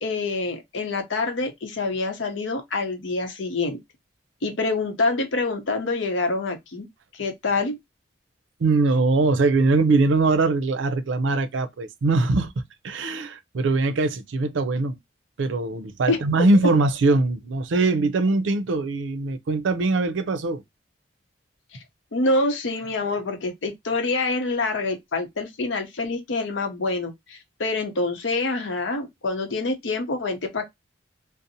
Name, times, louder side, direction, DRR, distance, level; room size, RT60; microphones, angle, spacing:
voice 1, 0.0-3.8 4.4-6.9 7.1-7.8 16.1-16.2 21.7-21.8 22.1-30.7, left 3 dB, 80° left, 0.7 m, -26 dB
voice 2, 8.6-12.5 12.8-15.0 15.4-20.6, right 3 dB, 90° right, 0.5 m, -22 dB
2.6 x 2.0 x 2.6 m
head